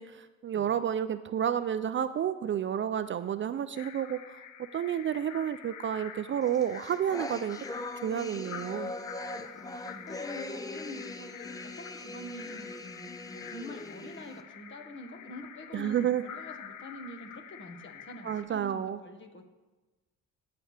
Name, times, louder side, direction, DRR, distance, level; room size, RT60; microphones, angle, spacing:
voice 1, 0.0-4.4 4.7-7.6 8.0-8.9 15.7-16.2 18.2-19.0, right 9 dB, 40° right, 12 dB, 0.4 m, -30 dB
sound 1, 3.7-18.4, left 8 dB, 80° left, 0.9 m, -47 dB
sound 2, 6.5-14.4, left 2 dB, 10° left, 0.6 m, -41 dB
voice 2, 9.4-19.4, left 1 dB, 40° left, 5 dB, 1.5 m, -46 dB
18.5 x 6.8 x 3.3 m, 1.2 s
cardioid pair, 90°, 30 cm